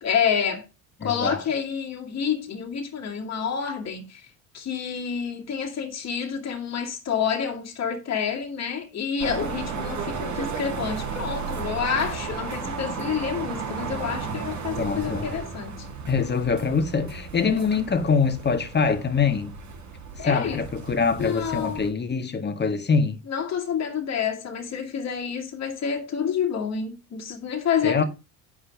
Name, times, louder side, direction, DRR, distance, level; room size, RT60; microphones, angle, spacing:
voice 1, 0.0-0.7 1.0-4.3 4.5-15.9 17.4-17.6 20.2-20.6 21.2-21.8 23.3-28.0, left 7 dB, 40° left, 2.3 m, -28 dB
voice 2, 1.0-1.4 14.8-15.4 16.1-19.5 20.2-23.2 27.8-28.0, left 5 dB, 25° left, 1.7 m, -24 dB
sound 1, 9.2-21.9, right 5 dB, 45° right, 3.0 m, -34 dB
8.4 x 5.7 x 5.2 m
hypercardioid pair, 65°, 40 cm